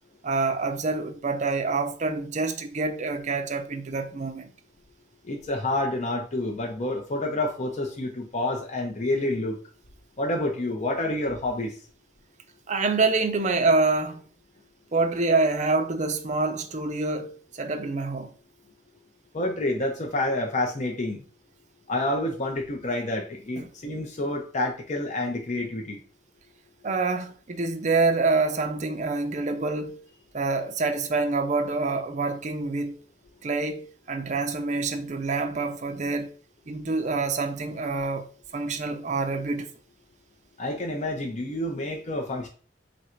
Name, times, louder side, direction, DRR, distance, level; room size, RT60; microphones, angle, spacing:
voice 1, 0.2-4.5 12.7-14.2 14.9-18.3 23.6-23.7 26.8-30.0 30.3-33.0 33.4-36.3 36.7-38.3 38.5-39.7, right 3 dB, 40° right, 0.6 m, -26 dB
voice 2, 5.2-9.6 10.2-11.8 19.3-21.2 21.9-26.0 40.6-42.5, left 1 dB, 40° left, 0.6 m, -28 dB
3.9 x 2.5 x 4.3 m
head